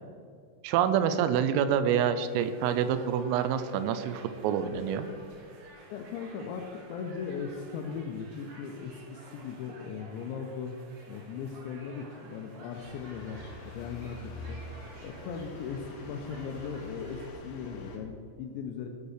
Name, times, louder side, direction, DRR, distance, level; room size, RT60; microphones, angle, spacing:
voice 1, 0.6-5.1, right 8 dB, 90° right, 11 dB, 3.3 m, -27 dB
sound 1, 2.3-17.3, right 2 dB, 65° right, 3.6 m, -53 dB
voice 2, 5.6-10.8 11.1-14.6 15.0-18.9, left 6 dB, 80° left, 3 dB, 2.7 m, -38 dB
sound 2, 12.7-18.0, left 2 dB, 65° left, 3.6 m, -45 dB
15.5 x 5.4 x 6.5 m, 2.5 s
omnidirectional pair, 5.8 m